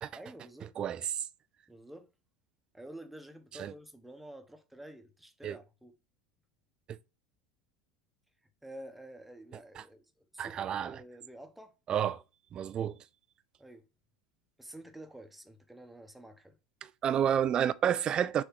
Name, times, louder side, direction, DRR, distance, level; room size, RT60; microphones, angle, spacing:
voice 1, 0.2-0.7 1.7-2.1 2.7-5.9 8.6-11.7 12.7-13.0 13.6-13.8 14.6-16.6, right 1 dB, 5° right, 1.1 m, -49 dB
voice 2, 0.8-1.1 3.6-3.7 5.4-5.6 9.8-9.9 10.4-10.9 11.9-12.2 12.5-12.9 17.0-18.4, right 9 dB, 35° right, 0.5 m, -30 dB
6.5 x 3.5 x 4.5 m
figure-of-eight pair, 75°, 3 cm